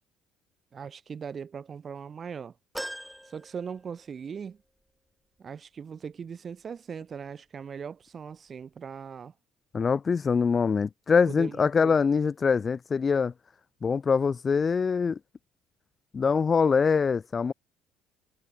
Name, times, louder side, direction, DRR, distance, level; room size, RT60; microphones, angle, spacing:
voice 1, 0.7-2.5 3.3-4.6 5.4-9.3 11.3-12.0, right 6 dB, 40° right, 5.4 m, -39 dB
sound 1, 2.7-4.4 4.8-4.9 6.1-6.2, equal, ahead, 5.5 m, -41 dB
voice 2, 9.7-13.3 13.8-15.2 16.1-17.5, left 5 dB, 35° left, 0.5 m, -24 dB
supercardioid pair, 90°, 0 cm